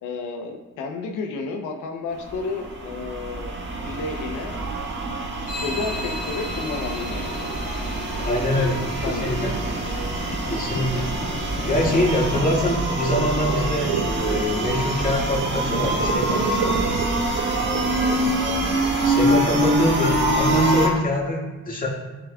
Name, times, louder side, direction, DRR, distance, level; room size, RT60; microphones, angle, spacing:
voice 1, 0.0-3.5 3.8-4.6 5.6-7.3 9.0-9.3 17.8-18.2, left 4 dB, 85° left, 3 dB, 0.8 m, -31 dB
sound 1, 2.2-20.9, right 1 dB, 40° right, 1.4 m, -25 dB
sound 2, 4.5-8.0 8.4-21.1, right 6 dB, 75° right, 0.7 m, -33 dB
sound 3, 5.5-12.4, left 1 dB, 60° left, 2.2 m, -34 dB
voice 2, 8.2-9.6 10.5-11.3 11.7-16.9 19.0-21.9, left 1 dB, 30° left, -3 dB, 2.0 m, -24 dB
11.0 x 4.9 x 2.4 m, 1.2 s
cardioid pair, 90°, 30 cm